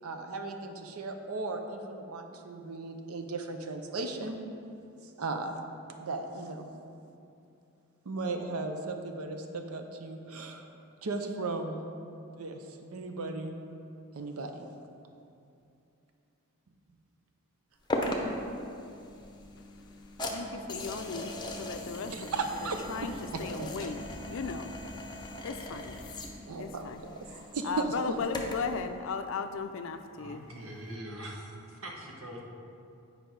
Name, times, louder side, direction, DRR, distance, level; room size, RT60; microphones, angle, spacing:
voice 1, 0.0-4.4 5.0-5.5 6.0-6.8 8.0-10.7 11.0-11.8 12.3-13.6 14.1-14.7 22.1-23.8 26.5-27.1 27.5-28.2, right 3 dB, 80° right, 5 dB, 0.6 m, -36 dB
sound 1, 17.9-28.8, left 1 dB, 20° left, 0.6 m, -39 dB
voice 2, 19.6-22.3 22.6-23.1 23.4-26.2 26.6-27.0 27.3-30.5, left 4 dB, 60° left, 8 dB, 0.4 m, -37 dB
voice 3, 30.2-32.4, right 1 dB, 65° right, -1 dB, 1.2 m, -43 dB
8.4 x 5.1 x 4.6 m, 2.6 s
head